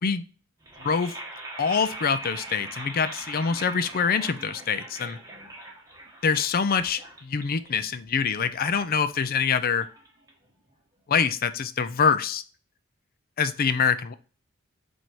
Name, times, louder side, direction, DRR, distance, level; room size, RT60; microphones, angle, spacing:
sound 1, 0.6-10.7, right 1 dB, 15° right, 1.2 m, -42 dB
voice 1, 1.6-5.2 6.2-9.9 11.1-12.4 13.4-14.1, left 6 dB, 45° left, 13 dB, 0.5 m, -25 dB
7.4 x 2.7 x 4.8 m, 0.38 s
head